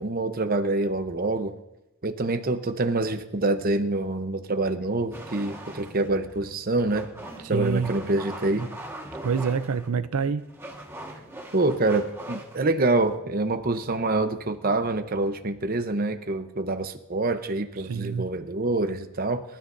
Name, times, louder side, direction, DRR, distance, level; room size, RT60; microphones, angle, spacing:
voice 1, 0.0-1.5 2.0-7.1 7.5-8.7 11.5-19.4, right 2 dB, 40° right, 8 dB, 0.8 m, -26 dB
sound 1, 5.1-16.2, right 1 dB, 10° right, 1.6 m, -42 dB
voice 2, 7.4-7.9 9.2-10.5 17.8-18.3, right 6 dB, 85° right, 11 dB, 0.5 m, -27 dB
24.5 x 13.0 x 2.6 m, 0.96 s
head